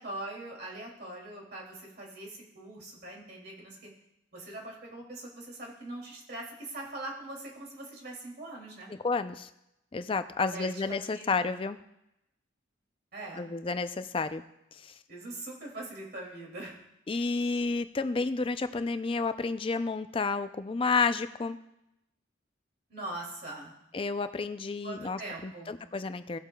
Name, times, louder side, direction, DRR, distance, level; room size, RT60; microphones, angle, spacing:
voice 1, 0.0-3.9 4.3-8.9 10.5-11.5 13.1-13.5 15.1-16.8 22.9-23.8 24.8-25.8, right 2 dB, 55° right, -2 dB, 2.5 m, -42 dB
voice 2, 8.9-9.5 9.9-11.8 13.4-14.4 14.8-14.9 17.1-21.6 23.9-26.4, left 4 dB, 30° left, 10 dB, 0.4 m, -31 dB
17.0 x 7.8 x 2.3 m, 0.86 s
head